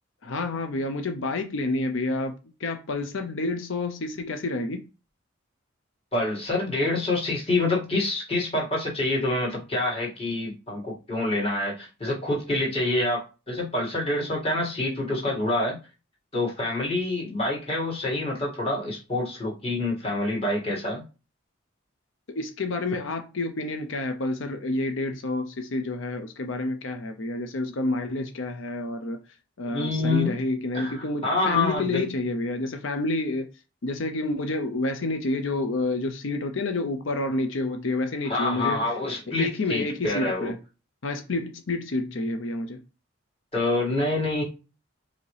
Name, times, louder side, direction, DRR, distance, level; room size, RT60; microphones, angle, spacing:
voice 1, 0.2-4.8 22.3-29.2 29.6-33.5 33.8-38.9 39.3-40.6 41.0-42.8, left 2 dB, 70° left, 0.6 m, -29 dB
voice 2, 6.1-15.8 16.3-21.0 29.7-30.3 30.7-32.1 38.2-40.5 43.5-44.4, left 2 dB, 30° left, 2.0 m, -27 dB
4.9 x 2.8 x 3.2 m
head